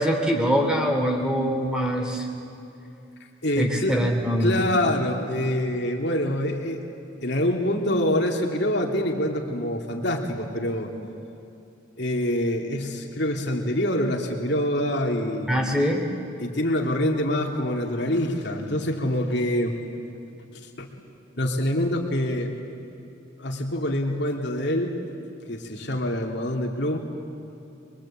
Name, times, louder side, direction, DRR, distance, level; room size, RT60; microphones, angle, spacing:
voice 1, 0.0-2.3 3.6-4.6 15.5-16.0, equal, 5° right, 2 dB, 2.6 m, -23 dB
voice 2, 3.4-4.0 4.4-6.8 7.2-10.9 12.0-15.5 16.4-19.7 20.5-20.9 21.4-22.5 23.4-24.9 25.5-27.0, left 1 dB, 55° left, 1 dB, 2.9 m, -25 dB
24.0 x 23.0 x 8.8 m, 2.8 s
head